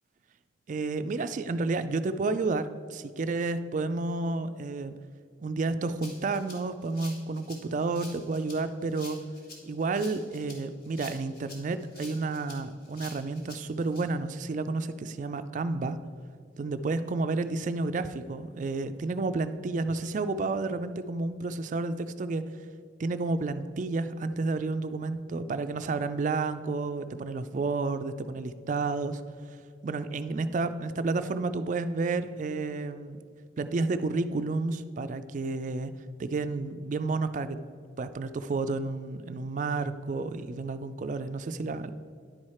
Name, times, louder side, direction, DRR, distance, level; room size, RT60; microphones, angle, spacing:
voice 1, 0.7-5.0 5.4-9.3 9.6-16.0 16.6-22.5 23.0-29.2 29.8-33.2 33.6-35.9 36.2-37.6 38.0-41.9, right 3 dB, 40° right, 11 dB, 0.3 m, -31 dB
Rattle (instrument), 6.0-14.0, left 2 dB, 50° left, 1.7 m, -48 dB
10.5 x 4.7 x 4.3 m, 2.2 s
head